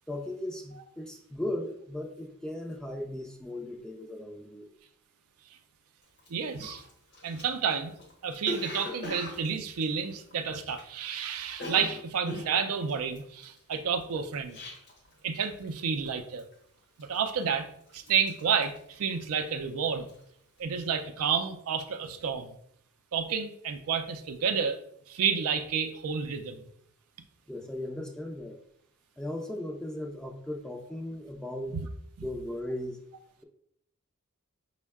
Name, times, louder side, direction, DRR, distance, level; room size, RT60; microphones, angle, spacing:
voice 1, 0.1-4.7 27.5-28.6 29.2-31.8 32.2-33.0, left 1 dB, 5° left, 3 dB, 0.4 m, -37 dB
Cough, 6.2-6.3 6.6-11.1 11.3-15.1 15.4-15.8 16.1-16.5 17.0-17.6 17.9-19.6 19.9-20.2, left 1 dB, 55° left, 0.9 m, -41 dB
voice 2, 6.3-6.8 7.2-7.9 8.2-14.6 15.2-16.5 17.0-17.7 17.9-20.1 20.6-22.5 23.1-24.8 25.1-26.6 31.7-31.9, right 6 dB, 80° right, 8 dB, 0.4 m, -30 dB
5.2 x 2.1 x 3.5 m, 0.71 s
head